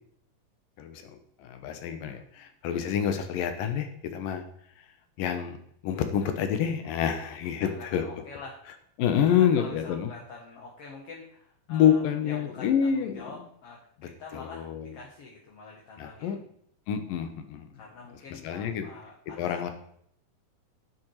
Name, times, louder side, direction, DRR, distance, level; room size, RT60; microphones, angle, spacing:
voice 1, 1.4-4.4 5.2-5.6 5.8-8.0 9.0-10.1 11.7-13.3 14.5-14.8 16.0-16.4 16.9-17.7 18.4-18.9 19.4-19.7, left 8 dB, 85° left, 8 dB, 2.8 m, -27 dB
voice 2, 6.8-7.3 7.6-8.6 9.2-16.5 17.7-19.7, left 4 dB, 50° left, -2 dB, 2.3 m, -46 dB
9.4 x 8.8 x 4.8 m, 0.66 s
omnidirectional pair, 3.9 m